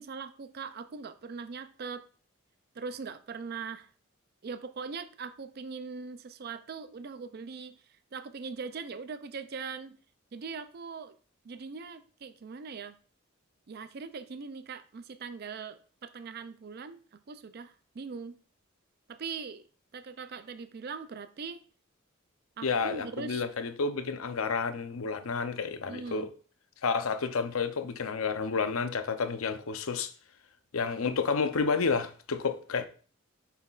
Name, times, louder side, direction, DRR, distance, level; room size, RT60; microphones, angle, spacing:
voice 1, 0.0-2.0 2.8-3.9 4.4-7.8 8.1-10.0 10.3-11.1 11.4-13.0 13.7-17.0 17.3-18.4 19.1-19.6 19.9-21.6 22.6-23.4 25.9-26.3, right 5 dB, 50° right, 0.4 m, -41 dB
voice 2, 22.6-26.3 26.8-30.1 30.7-32.9, left 5 dB, 85° left, 0.6 m, -30 dB
8.0 x 5.7 x 2.4 m
head